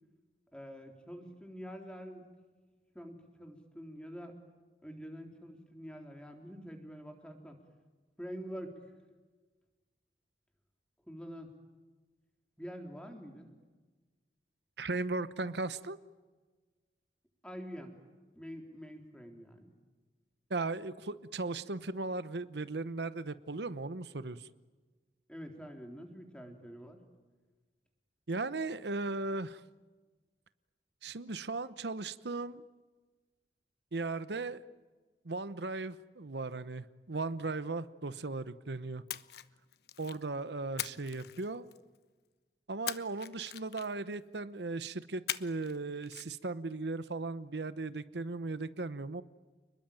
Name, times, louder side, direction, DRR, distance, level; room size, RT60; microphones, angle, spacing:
voice 1, 0.5-2.3 2.9-4.3 4.8-7.6 8.2-8.8 11.1-11.5 12.6-13.5 17.4-17.9 18.3-19.7 25.3-27.0, equal, 5° left, 3 dB, 3.7 m, -46 dB
voice 2, 14.8-16.0 20.5-24.5 28.3-29.6 31.0-32.6 33.9-34.6 35.2-39.0 40.0-41.7 42.7-49.2, right 3 dB, 80° right, 14 dB, 0.9 m, -37 dB
Splash splatter, 39.1-40.2 40.8-42.0 42.9-44.1 45.3-45.8 46.0-46.2, left 11 dB, 70° left, 1.0 m, -41 dB
30.0 x 21.0 x 9.1 m, 1.3 s
head